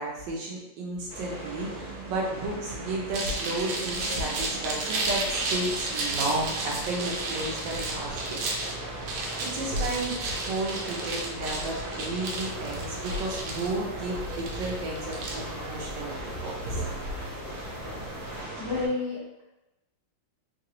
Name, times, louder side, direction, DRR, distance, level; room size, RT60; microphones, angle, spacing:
voice 1, 0.0-8.4 9.4-16.8, right 2 dB, 70° right, -3 dB, 1.4 m, -33 dB
sound 1, 1.1-18.9, right 1 dB, 35° right, 0.7 m, -38 dB
sound 2, 3.1-17.1, right 2 dB, 85° right, 1.5 m, -33 dB
sound 3, 12.3-18.4, left 3 dB, 75° left, 1.5 m, -46 dB
voice 2, 18.6-19.4, left 3 dB, 20° left, -7 dB, 0.6 m, -30 dB
3.9 x 2.8 x 2.9 m, 0.98 s
omnidirectional pair, 2.2 m